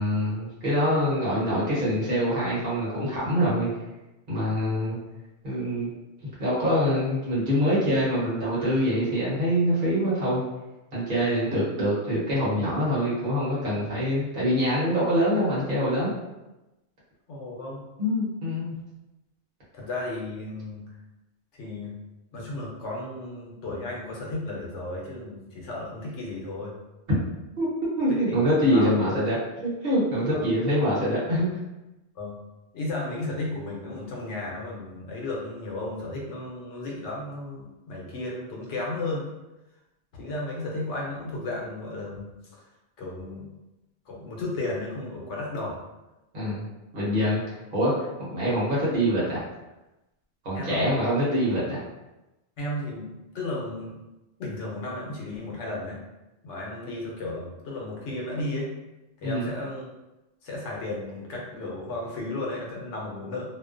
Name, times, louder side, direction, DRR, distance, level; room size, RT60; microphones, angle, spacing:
voice 1, 0.0-3.7 4.3-5.0 5.4-5.9 6.4-10.4 10.9-16.1 18.0-18.7 27.6-27.7 28.0-31.6 46.3-46.7 46.9-47.4 47.7-49.4 50.4-51.8 59.2-59.5, equal, 45° right, -8 dB, 1.0 m, -25 dB
voice 2, 17.3-17.8 19.7-20.9 21.6-22.0 22.3-26.8 28.1-28.4 28.7-28.9 30.3-30.5 32.2-32.4 32.7-39.3 40.1-42.2 43.0-43.5 44.1-45.8 50.5-50.9 52.6-53.1 53.3-54.0 54.4-56.0 56.4-58.7 59.2-59.9 60.4-63.5, left 2 dB, 85° left, -2 dB, 1.0 m, -34 dB
2.5 x 2.1 x 2.4 m, 0.99 s
omnidirectional pair, 1.2 m